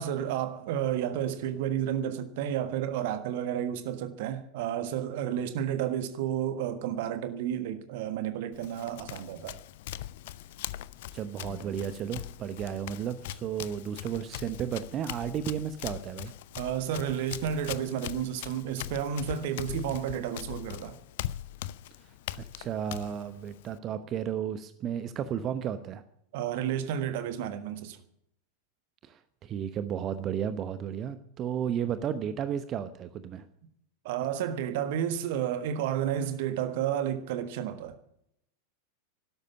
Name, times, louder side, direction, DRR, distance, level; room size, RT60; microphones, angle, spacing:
voice 1, 0.0-9.6 16.6-21.0 26.3-28.0 34.0-38.0, right 9 dB, 50° right, 1.5 m, -31 dB
Run, 8.5-23.8, left 13 dB, 50° left, 0.5 m, -41 dB
voice 2, 11.1-16.3 22.0-22.1 22.4-26.0 29.0-33.5, right 9 dB, 30° right, 1.0 m, -33 dB
12.5 x 12.0 x 8.6 m
figure-of-eight pair, 90°, 0 cm